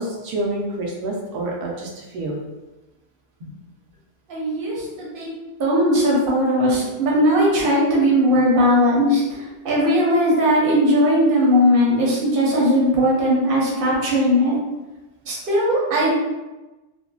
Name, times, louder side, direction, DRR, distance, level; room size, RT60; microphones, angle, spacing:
voice 1, 0.0-2.4, right 1 dB, 80° right, -1 dB, 1.1 m, -27 dB
voice 2, 4.3-5.3 5.6-14.5 15.2-16.1, equal, 45° right, -5 dB, 0.8 m, -18 dB
3.7 x 2.0 x 2.3 m, 1.1 s
omnidirectional pair, 1.6 m